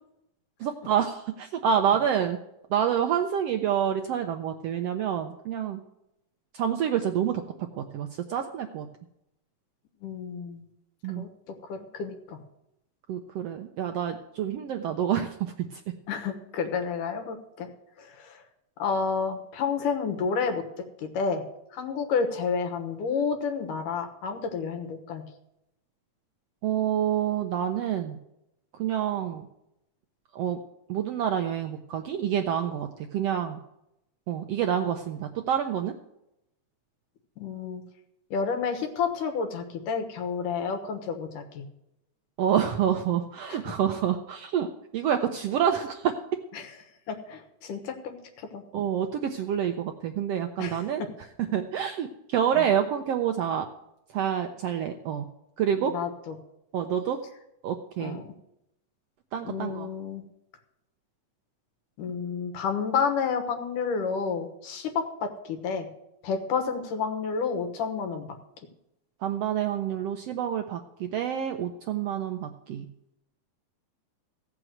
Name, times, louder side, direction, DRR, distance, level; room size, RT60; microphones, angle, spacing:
voice 1, 0.6-2.4 2.7-5.8 6.5-7.4 7.7-8.9 11.0-11.3 13.1-15.8 26.6-28.2 28.8-29.5 30.3-30.6 30.9-33.6 34.3-35.9 42.4-46.1 48.7-51.0 51.5-53.7 54.1-55.2 55.6-55.9 56.7-57.2 57.6-58.2 59.3-59.9 69.2-72.8, right 9 dB, 75° right, 5 dB, 1.4 m, -27 dB
voice 2, 10.0-10.7 11.2-12.4 16.1-17.7 18.0-18.4 18.8-21.4 21.7-25.2 37.4-37.8 38.3-41.6 43.5-43.8 46.5-46.7 47.1-48.6 50.6-50.8 52.6-52.7 55.8-56.3 58.0-58.3 59.4-60.2 62.0-65.9 66.2-68.4, left 5 dB, 90° left, 6 dB, 3.0 m, -30 dB
15.5 x 6.1 x 7.8 m, 0.84 s
omnidirectional pair, 3.6 m